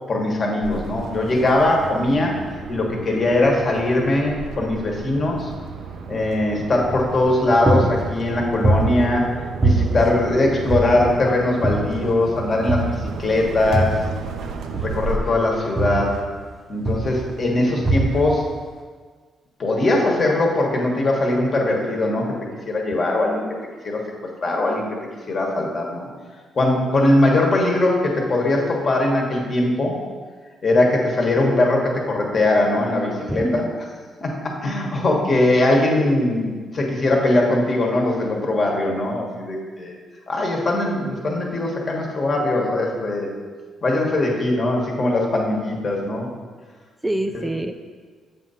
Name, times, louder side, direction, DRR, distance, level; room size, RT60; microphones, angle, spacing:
voice 1, 0.1-2.4 2.7-5.5 6.1-9.3 9.6-14.0 14.8-16.2 16.7-18.5 19.6-22.4 22.7-23.5 23.8-24.0 24.4-24.9 25.3-26.1 26.5-30.0 30.6-33.7 34.2-39.9 40.3-43.3 43.8-46.3 47.3-47.5, left 2 dB, 40° left, 0 dB, 1.2 m, -20 dB
sound 1, 0.6-15.2, right 4 dB, 75° right, 0.5 m, -34 dB
sound 2, 6.9-7.3 7.7-9.3 9.6-11.2 11.6-12.2 12.7-14.2 14.7-16.5 16.8-17.3 17.8-18.4, right 2 dB, 30° right, 0.7 m, -23 dB
voice 2, 33.2-33.7 47.0-47.7, right 1 dB, 10° right, 6 dB, 0.3 m, -25 dB
7.4 x 2.6 x 5.5 m, 1.5 s
cardioid pair, 90°, 0 cm